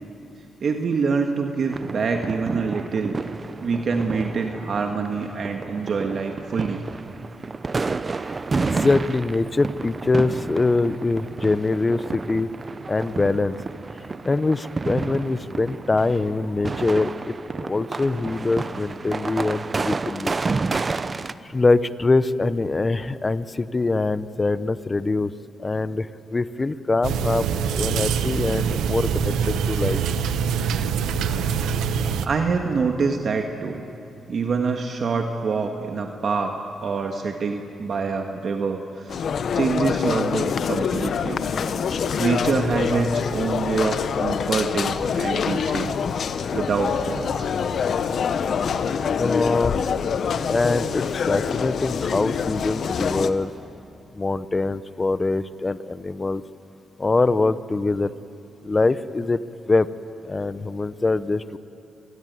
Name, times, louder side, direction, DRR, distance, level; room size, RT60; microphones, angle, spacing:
voice 1, 0.6-3.2 3.6-6.8 32.2-33.8 34.3-36.5 36.8-39.3 39.5-41.4 41.9-46.0 46.5-47.5, right 4 dB, 55° right, 4 dB, 1.7 m, -25 dB
sound 1, 1.7-21.3, right 4 dB, 35° right, 0.8 m, -30 dB
voice 2, 8.3-12.5 12.9-13.6 14.2-17.3 17.6-20.3 21.5-25.3 25.6-27.4 27.8-30.0 49.2-49.9 50.5-53.5 54.1-56.4 57.0-58.1 58.6-59.4 59.7-59.9 60.2-61.6, left 3 dB, 25° left, 14 dB, 0.9 m, -23 dB
sound 2, 27.0-32.3, right 7 dB, 90° right, 1.2 m, -24 dB
sound 3, 39.1-53.3, left 6 dB, 65° left, 1.1 m, -25 dB
27.5 x 19.5 x 9.5 m, 2.6 s
cardioid pair, 75°, 0 cm